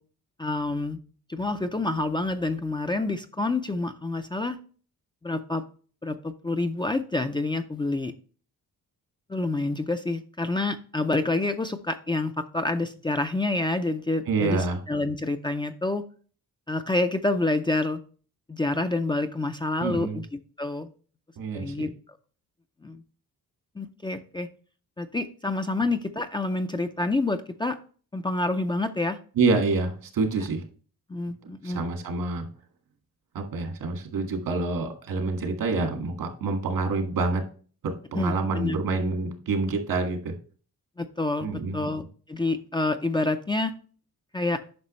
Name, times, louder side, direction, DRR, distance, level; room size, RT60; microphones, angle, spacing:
voice 1, 0.4-1.0 1.3-4.6 5.2-5.6 6.0-8.1 9.3-16.0 16.7-18.0 18.5-20.3 20.6-20.9 21.5-21.9 22.8-23.0 23.8-24.5 25.0-27.8 28.1-29.2 31.1-31.8 38.1-38.8 41.0-42.0 42.3-43.7 44.3-44.6, left 2 dB, 15° left, 7 dB, 0.4 m, -28 dB
voice 2, 14.3-14.8 19.8-20.2 21.4-21.7 29.4-30.6 31.6-32.5 33.3-37.4 37.8-40.3 41.4-41.9, right 3 dB, 80° right, 4 dB, 1.9 m, -27 dB
9.5 x 6.0 x 3.1 m, 0.41 s
wide cardioid pair, 165°, 35 cm